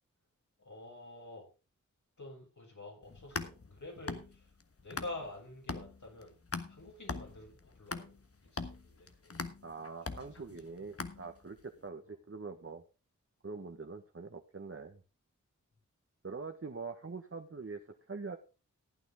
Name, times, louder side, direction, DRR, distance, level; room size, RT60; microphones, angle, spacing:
voice 1, 0.6-1.5 2.2-4.5 4.8-6.4 6.7-8.2 8.5-9.5 10.1-10.5 10.7-10.8 12.1-12.2, left 2 dB, 70° left, -1 dB, 7.4 m, -48 dB
sound 1, 3.0-5.4 5.7-11.6, left 3 dB, 50° left, 1.4 m, -42 dB
voice 2, 9.6-12.8 13.4-15.0 16.2-17.8 18.1-18.4, right 4 dB, 45° right, 4 dB, 1.5 m, -44 dB
15.0 x 9.2 x 3.7 m, 0.31 s
cardioid pair, 50°, 31 cm